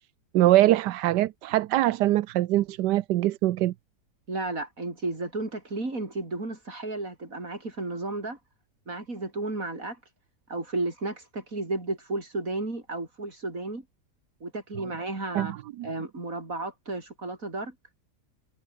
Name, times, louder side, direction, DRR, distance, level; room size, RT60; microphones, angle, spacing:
voice 1, 0.3-3.7 15.3-15.9, right 15 dB, 85° right, 1.3 m, -23 dB
voice 2, 4.3-8.4 8.9-10.0 10.5-13.8 14.4-15.5 15.8-17.7, right 2 dB, 55° right, 5.6 m, -33 dB
omnidirectional pair, 1.8 m